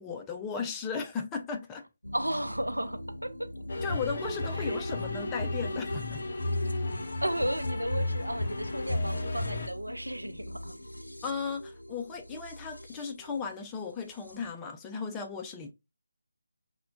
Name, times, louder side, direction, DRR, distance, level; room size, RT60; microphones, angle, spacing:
voice 1, 0.0-1.8 3.8-6.2 11.2-15.7, left 5 dB, 10° left, 0.3 m, -36 dB
sound 1, 2.0-14.5, left 1 dB, 80° left, 0.5 m, -44 dB
voice 2, 2.1-3.5 4.5-5.0 7.2-10.7, right 1 dB, 85° right, 0.5 m, -34 dB
sound 2, 3.7-9.7, left 2 dB, 40° left, 0.7 m, -33 dB
5.5 x 2.1 x 2.4 m
figure-of-eight pair, 155°, 0 cm